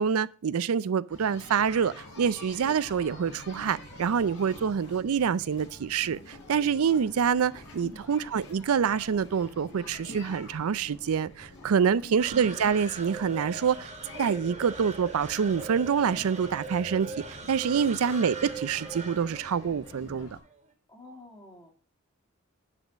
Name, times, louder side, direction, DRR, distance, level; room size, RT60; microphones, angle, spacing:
voice 1, 0.0-13.9 14.2-17.1 17.5-20.3, right 7 dB, 85° right, 0.4 m, -26 dB
sound 1, 1.1-20.4, left 2 dB, 55° left, 5.5 m, -47 dB
sound 2, 12.2-20.6, right 4 dB, 30° right, 1.7 m, -40 dB
voice 2, 17.6-17.9 20.9-21.7, left 3 dB, 20° left, 2.3 m, -49 dB
9.9 x 4.3 x 6.2 m
head